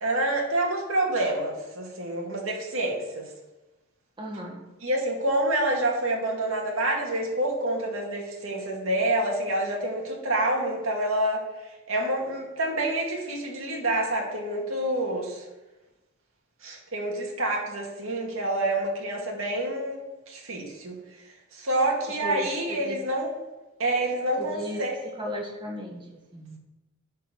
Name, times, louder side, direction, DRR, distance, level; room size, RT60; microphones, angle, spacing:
voice 1, 0.0-3.3 4.8-11.4 11.9-15.4 16.6-20.0 20.3-21.0 21.5-23.3 23.8-25.0, right 1 dB, 85° right, 0 dB, 2.2 m, -27 dB
voice 2, 4.2-4.6 22.2-23.0 24.4-24.8 25.2-26.6, equal, 25° right, -1 dB, 1.8 m, -35 dB
10.0 x 4.6 x 6.8 m, 1.0 s
head